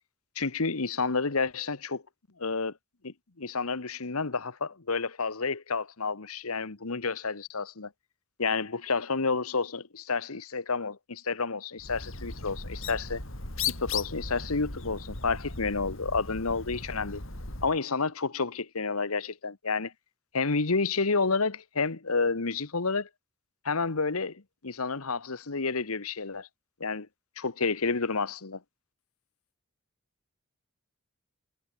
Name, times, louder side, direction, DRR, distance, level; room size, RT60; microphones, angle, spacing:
voice 1, 0.3-2.0 2.4-2.7 3.0-7.9 8.4-13.2 13.8-17.2 17.6-19.9 20.3-23.1 23.6-26.5 26.8-27.1 27.4-28.6, left 4 dB, 85° left, 1.4 m, -30 dB
Bird, 11.8-17.8, left 5 dB, 65° left, 5.2 m, -37 dB
head